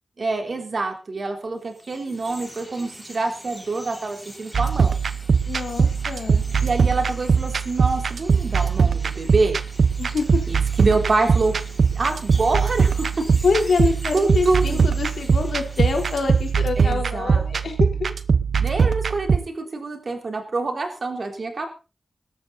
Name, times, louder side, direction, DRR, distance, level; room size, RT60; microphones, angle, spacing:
voice 1, 0.2-5.0 6.6-9.6 10.5-11.5 11.9-13.3 14.1-14.8 16.8-17.5 18.6-21.7, right 3 dB, 55° right, 5 dB, 3.6 m, -26 dB
Chirp tweet, 1.6-17.2, equal, 5° right, 6.9 m, -43 dB
sound 1, 4.5-19.4, right 5 dB, 75° right, 0.9 m, -21 dB
voice 2, 5.5-6.5 10.0-10.4 13.4-18.1, left 4 dB, 85° left, 4 dB, 3.9 m, -25 dB
18.0 x 13.0 x 4.1 m, 0.33 s
wide cardioid pair, 90°, 0 cm